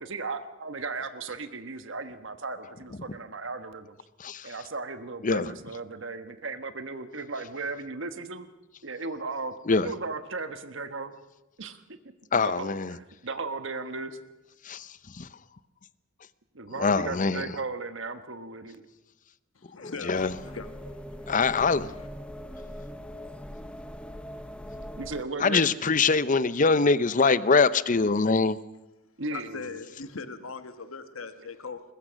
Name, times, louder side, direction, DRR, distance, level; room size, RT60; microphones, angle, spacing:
voice 1, 0.0-4.0 4.4-8.5 8.8-9.5 9.8-11.1 11.6-12.0 12.4-14.2 16.5-18.8 25.0-25.7 29.2-29.8, right 3 dB, 65° right, 1.3 m, -36 dB
voice 2, 12.3-12.9 14.7-14.8 15.2-15.3 16.8-17.4 19.8-20.3 21.3-21.9 25.4-28.6, left 4 dB, 40° left, 0.7 m, -23 dB
voice 3, 19.5-22.1 29.3-31.8, left 4 dB, 90° left, 1.3 m, -41 dB
sound 1, 20.1-25.2, equal, 5° left, 0.8 m, -41 dB
21.0 x 21.0 x 6.4 m
head